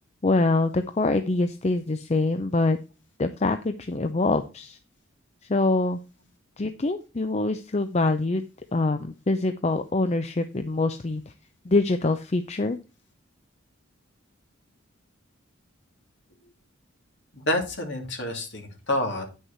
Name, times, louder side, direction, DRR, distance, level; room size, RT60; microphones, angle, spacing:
voice 1, 0.2-2.8 3.2-4.8 5.5-6.0 6.6-8.4 8.7-11.2 11.7-12.8, left 2 dB, 30° left, 9 dB, 0.5 m, -24 dB
voice 2, 17.3-19.4, left 1 dB, 55° left, 2 dB, 2.8 m, -28 dB
9.7 x 6.4 x 4.4 m, 0.31 s
head